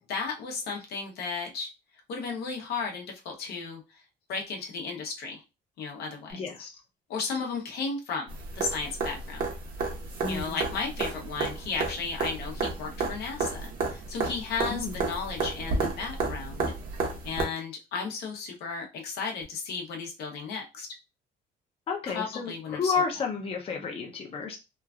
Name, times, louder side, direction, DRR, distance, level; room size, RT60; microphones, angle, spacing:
voice 1, 0.1-1.7 2.1-3.8 4.3-5.4 5.8-6.4 7.1-8.3 8.5-9.4 10.3-16.7 17.2-20.9 22.1-22.9, left 5 dB, 70° left, 1 dB, 0.8 m, -34 dB
voice 2, 6.3-6.7 10.2-10.6 14.7-15.0 21.9-24.6, left 5 dB, 35° left, 2 dB, 0.6 m, -31 dB
sound 1, 8.3-17.4 19.4-19.5, right 4 dB, 60° right, 1.0 m, -32 dB
3.0 x 2.3 x 2.4 m, 0.27 s
cardioid pair, 110°, 17 cm